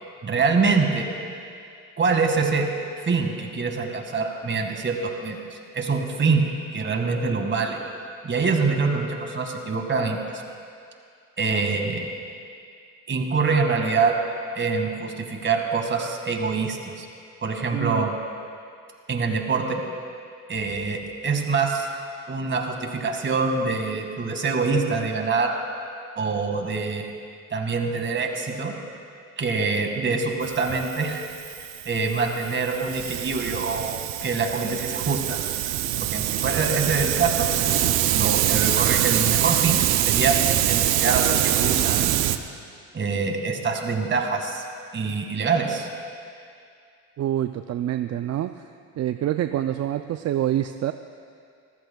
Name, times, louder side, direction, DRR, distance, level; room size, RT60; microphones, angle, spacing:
voice 1, 0.2-1.1 2.0-2.7 3.0-7.8 8.2-10.4 11.4-12.1 13.1-14.2 14.6-17.1 17.4-18.1 19.1-19.8 20.5-21.9 22.3-25.6 26.2-27.1 27.5-28.7 29.4-31.2 31.9-35.4 36.0-40.4 40.6-42.1 42.9-44.6 44.9-45.9, right 4 dB, 35° right, 3 dB, 2.0 m, -25 dB
voice 2, 17.7-18.0 47.2-48.7 49.0-50.9, right 12 dB, 50° right, 9 dB, 0.5 m, -26 dB
Hiss, 30.4-42.4, right 13 dB, 80° right, 0.7 m, -24 dB
26.0 x 14.5 x 2.3 m, 2.3 s
cardioid pair, 90°, 35 cm